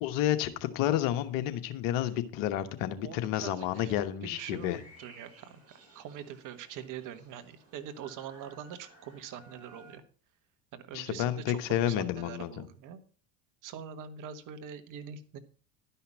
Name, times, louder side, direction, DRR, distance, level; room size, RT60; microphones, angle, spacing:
voice 1, 0.0-4.8 10.9-12.6, left 12 dB, 60° left, 1.2 m, -30 dB
voice 2, 3.0-3.9 4.2-5.6 5.9-10.0 10.7-13.0 13.6-15.4, right 8 dB, 55° right, 1.3 m, -43 dB
sound 1, 4.3-10.0, right 1 dB, 40° right, 5.9 m, -57 dB
11.5 x 5.7 x 6.0 m
hypercardioid pair, 80°, 38 cm